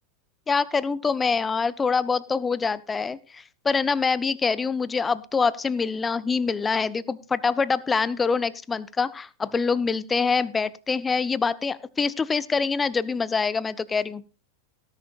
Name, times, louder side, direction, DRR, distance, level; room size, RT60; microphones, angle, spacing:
voice 1, 0.5-14.2, left 5 dB, 15° left, 19 dB, 0.6 m, -25 dB
18.5 x 10.5 x 2.4 m, 0.34 s
figure-of-eight pair, 90°, 0 cm